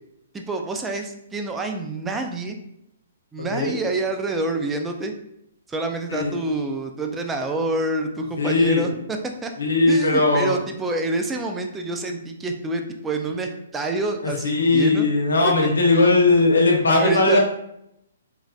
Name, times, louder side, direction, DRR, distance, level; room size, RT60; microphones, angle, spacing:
voice 1, 0.3-2.6 3.3-5.1 5.7-9.5 9.9-15.1 15.4-15.5 16.9-17.4, right 2 dB, 10° right, 4 dB, 0.3 m, -27 dB
voice 2, 3.4-3.7 6.1-6.4 8.4-8.9 9.6-10.6 14.2-17.4, left 2 dB, 85° left, 0 dB, 0.8 m, -19 dB
3.2 x 2.4 x 2.3 m, 0.79 s
hypercardioid pair, 135°, 0 cm